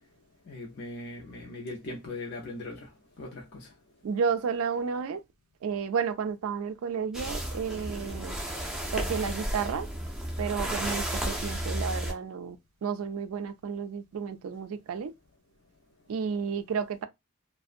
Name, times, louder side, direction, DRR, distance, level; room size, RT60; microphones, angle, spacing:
voice 1, 0.5-2.9 3.2-3.7, left 2 dB, 50° left, 0.5 m, -39 dB
voice 2, 4.0-5.2 5.6-8.4 8.9-9.9 10.4-15.1 16.1-17.1, right 6 dB, 70° right, 0.3 m, -32 dB
sound 1, 7.1-12.1, right 1 dB, 5° right, 0.4 m, -33 dB
2.5 x 2.0 x 2.4 m
head